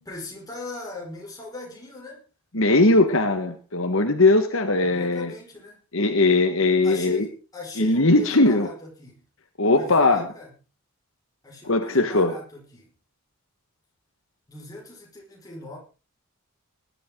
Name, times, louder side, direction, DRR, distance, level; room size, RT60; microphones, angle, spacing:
voice 1, 0.0-2.2 4.8-5.8 6.8-9.2 9.7-10.5 11.4-12.9 14.5-15.8, left 2 dB, 15° left, -1 dB, 5.4 m, -39 dB
voice 2, 2.5-5.3 5.9-7.3 7.8-8.7 9.6-10.3 11.6-12.3, left 2 dB, 65° left, 6 dB, 1.6 m, -19 dB
19.5 x 12.0 x 3.9 m, 0.34 s
head